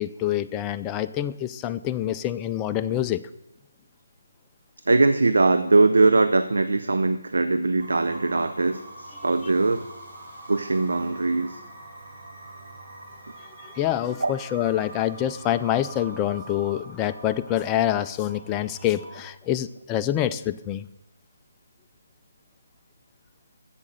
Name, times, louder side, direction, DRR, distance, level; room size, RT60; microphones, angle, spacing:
voice 1, 0.0-3.2 13.6-20.9, left 12 dB, 15° left, 9 dB, 0.3 m, -26 dB
voice 2, 4.9-9.9 10.5-11.6 14.2-14.3, right 3 dB, 75° right, 10 dB, 0.5 m, -21 dB
sound 1, 7.8-19.3, right 2 dB, 50° right, 2.8 m, -44 dB
8.4 x 7.5 x 7.8 m, 0.91 s
figure-of-eight pair, 150°, 0 cm